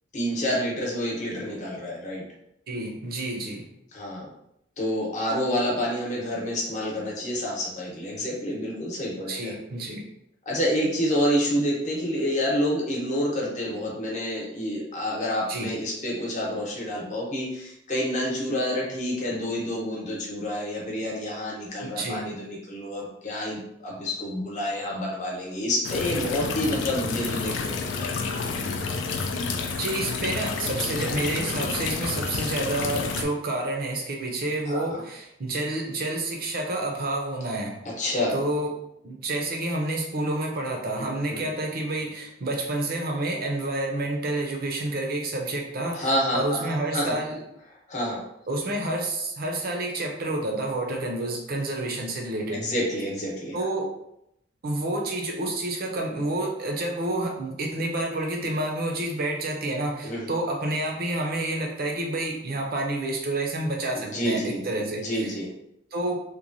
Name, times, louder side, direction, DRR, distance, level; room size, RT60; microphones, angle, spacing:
voice 1, 0.1-2.2 3.9-4.3 4.8-9.5 10.5-28.1 34.7-35.0 38.0-38.3 41.0-41.4 45.9-47.1 47.9-48.2 52.5-53.5 60.0-60.2 63.9-64.6 65.0-65.5, equal, 40° left, -4 dB, 0.8 m, -28 dB
voice 2, 2.7-3.7 9.3-10.0 15.5-15.7 21.8-22.2 29.8-37.8 38.3-38.7 39.0-47.4 48.5-52.6 53.5-53.9 54.6-65.3 65.9-66.2, right 2 dB, 55° right, 1 dB, 0.6 m, -29 dB
sound 1, 25.8-33.2, left 4 dB, 75° left, 0.3 m, -29 dB
3.0 x 2.2 x 2.6 m, 0.79 s
head